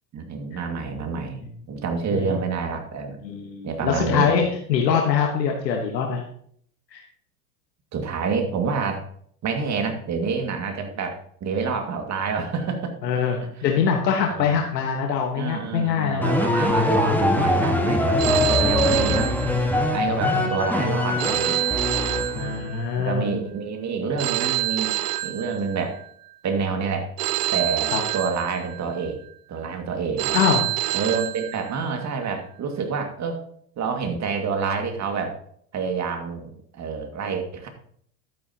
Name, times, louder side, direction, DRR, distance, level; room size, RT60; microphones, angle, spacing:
voice 1, 0.1-1.4 1.7-3.2 3.6-4.3 7.9-9.1 9.4-13.0 14.3-14.6 15.4-19.3 19.9-21.6 22.3-22.7 23.0-24.9 25.2-26.0 26.4-27.1 27.5-29.2 29.5-30.4 30.9-33.4 33.8-35.4 35.7-37.7, right 5 dB, 35° right, 4 dB, 2.2 m, -28 dB
voice 2, 3.2-6.2 6.9-7.0 13.0-16.3 20.1-20.5 22.3-23.4 27.9-28.0 30.3-30.7, left 7 dB, 85° left, 1 dB, 1.5 m, -24 dB
sound 1, 16.2-22.7, left 1 dB, 5° left, 1.5 m, -22 dB
Telephone, 18.2-20.1 21.2-23.1 24.2-26.1 27.2-29.0 30.2-32.0, right 16 dB, 70° right, 0.8 m, -27 dB
11.5 x 9.3 x 2.9 m, 0.63 s
hypercardioid pair, 95°, 49 cm